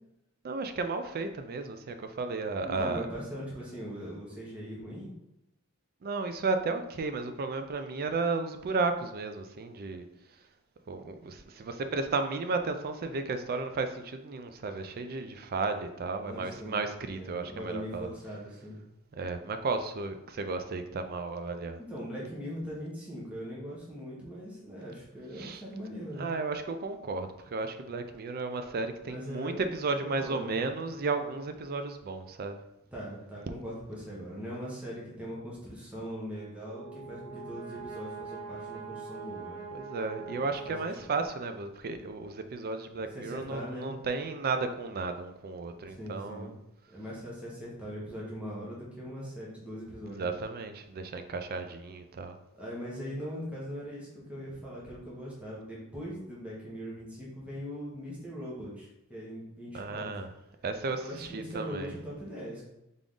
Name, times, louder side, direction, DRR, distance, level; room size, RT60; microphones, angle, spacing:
voice 1, 0.4-3.1 6.0-10.1 10.9-18.1 19.1-21.8 25.4-25.6 26.2-32.6 39.7-46.5 50.2-52.4 59.7-60.3 60.6-61.9, right 3 dB, 45° right, 8 dB, 0.4 m, -33 dB
voice 2, 2.6-5.1 16.2-16.8 17.1-18.8 21.9-26.3 29.0-29.6 29.9-30.6 32.9-39.6 40.3-40.8 43.1-44.0 45.9-46.6 46.9-50.3 52.5-60.1 60.9-62.6, equal, 5° right, -6 dB, 1.2 m, -40 dB
Brass instrument, 36.3-41.3, right 5 dB, 80° right, 1.0 m, -43 dB
3.8 x 3.6 x 3.7 m, 0.89 s
head